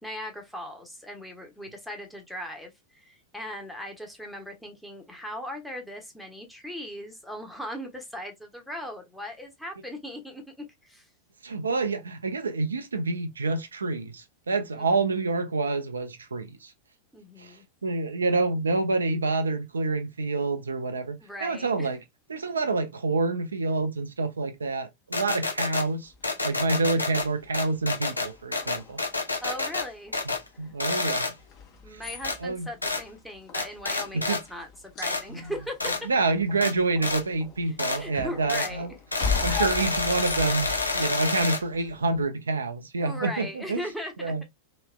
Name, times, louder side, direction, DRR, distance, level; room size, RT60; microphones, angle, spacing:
voice 1, 0.0-11.1 14.8-15.0 17.1-17.6 21.2-21.9 29.4-30.2 31.8-36.1 38.0-38.9 43.0-44.3, equal, ahead, 1.0 m, -38 dB
voice 2, 11.4-16.7 17.4-22.0 22.3-26.1 26.4-29.0 30.6-31.3 31.9-32.0 32.4-32.7 34.1-34.4 36.0-38.9 39.4-43.8 44.2-44.4, right 3 dB, 75° right, 0.5 m, -27 dB
sound 1, 25.1-25.9 26.2-27.3 27.5-29.9 30.1-30.5 30.8-31.3 32.2-32.4 32.8-33.0 33.5-34.4 35.0-35.2 35.8-36.0 36.6-36.7 37.0-37.2 37.8-38.0 38.5-38.7 39.1-41.6, left 3 dB, 80° left, 0.6 m, -28 dB
sound 2, 26.0-42.3, left 6 dB, 35° left, 1.1 m, -40 dB
3.2 x 3.0 x 2.2 m
figure-of-eight pair, 90°, 0 cm